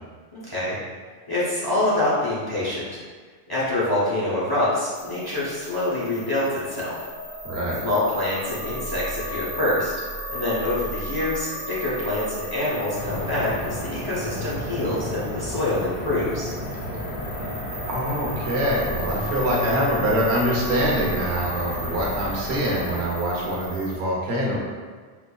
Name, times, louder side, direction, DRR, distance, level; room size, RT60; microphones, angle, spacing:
voice 1, 0.3-0.8 1.3-3.0 3.5-7.0 7.8-9.9 10.3-16.5, left 1 dB, 25° left, -9 dB, 0.7 m, -25 dB
sound 1, 4.9-24.0, equal, 50° right, 1.2 m, -35 dB
voice 2, 7.4-7.8 17.9-24.6, equal, 85° right, -4 dB, 1.1 m, -24 dB
sound 2, 12.9-23.0, left 1 dB, 60° left, 1.0 m, -33 dB
4.4 x 2.5 x 2.2 m, 1.5 s
omnidirectional pair, 1.1 m